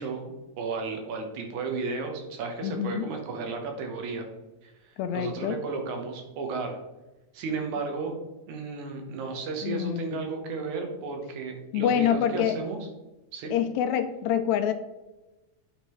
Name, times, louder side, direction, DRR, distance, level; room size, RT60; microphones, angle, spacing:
voice 1, 0.0-4.3 4.6-6.8 7.3-8.1 8.5-12.9 13.3-13.5, right 4 dB, 75° right, 3 dB, 2.5 m, -34 dB
voice 2, 2.6-3.1 5.0-5.6 9.6-10.2 11.7-12.6 13.5-14.7, left 9 dB, 80° left, 9 dB, 1.8 m, -26 dB
9.0 x 5.2 x 3.1 m, 1.0 s
omnidirectional pair, 3.4 m